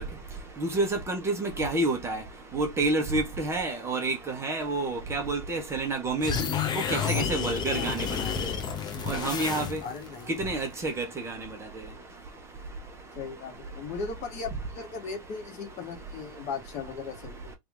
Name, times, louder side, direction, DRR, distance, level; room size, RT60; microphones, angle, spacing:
voice 1, 0.6-2.2 2.5-6.3 6.9-8.3 9.1-9.8 10.4-11.4, right 2 dB, 15° right, 1.1 m, -29 dB
sound 1, 6.2-10.1, left 7 dB, 25° left, 0.7 m, -30 dB
voice 2, 9.8-10.6 13.1-17.5, left 5 dB, 40° left, 1.4 m, -38 dB
3.6 x 2.8 x 3.6 m
supercardioid pair, 140°, 18 cm